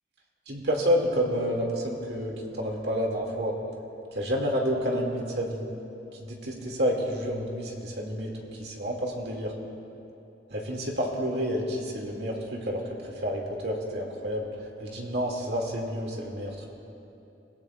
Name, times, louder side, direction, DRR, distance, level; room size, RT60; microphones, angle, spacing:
voice 1, 0.5-3.6 4.1-5.6 6.1-9.5 10.5-16.7, equal, 65° right, -1 dB, 2.3 m, -29 dB
25.0 x 17.5 x 2.4 m, 2.8 s
head